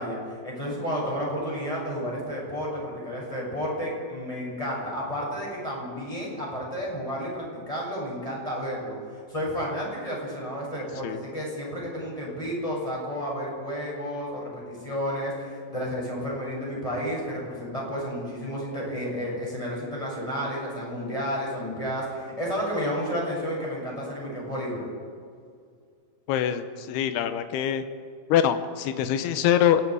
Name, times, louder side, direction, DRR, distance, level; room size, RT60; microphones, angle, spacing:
voice 1, 0.0-24.9, equal, 10° left, -4 dB, 7.5 m, -31 dB
voice 2, 26.3-27.8 28.3-29.8, left 10 dB, 85° left, 9 dB, 3.0 m, -24 dB
27.0 x 20.5 x 5.0 m, 2.1 s
omnidirectional pair, 4.5 m